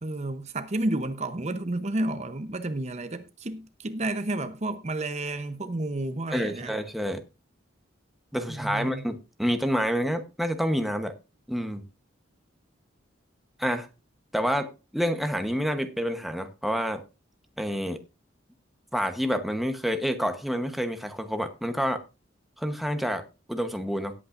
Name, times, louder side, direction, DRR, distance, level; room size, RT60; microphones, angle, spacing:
voice 1, 0.0-6.7 8.5-9.0, right 2 dB, 35° right, 0.8 m, -31 dB
voice 2, 6.3-7.2 8.3-11.1 11.5-11.8 13.6-13.9 14.3-17.0 17.6-18.0 18.9-22.0 22.6-23.2 23.5-24.1, equal, ahead, 1.0 m, -28 dB
18.0 x 8.6 x 2.5 m
head